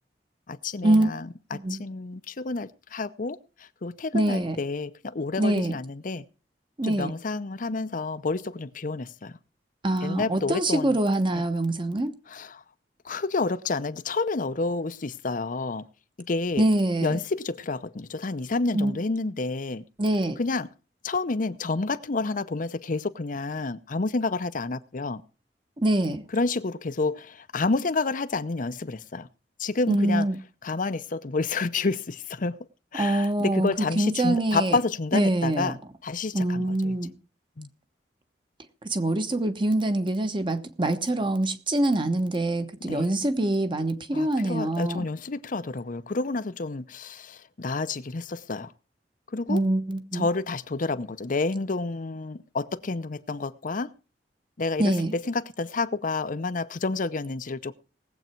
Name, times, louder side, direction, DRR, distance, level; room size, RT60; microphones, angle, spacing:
voice 1, 0.5-6.2 6.8-9.3 10.0-11.0 12.3-12.6 13.0-15.9 16.3-16.7 17.0-19.8 20.4-20.7 21.0-25.2 26.3-29.3 29.6-30.3 30.6-32.6 32.9-35.8 36.0-37.0 37.6-37.7 42.8-43.1 44.1-48.7 49.3-49.6 50.1-53.9 54.6-57.8, left 3 dB, 50° left, 0.7 m, -29 dB
voice 2, 4.1-4.6 5.4-5.7 6.8-7.1 9.8-12.1 16.6-17.2 18.7-18.9 20.0-20.4 25.8-26.2 29.9-30.4 32.9-33.7 34.0-34.8 35.1-35.7 36.3-37.1 38.9-45.1 49.5-50.3 54.8-55.1, right 1 dB, 30° right, 1.1 m, -24 dB
19.0 x 8.0 x 4.5 m
head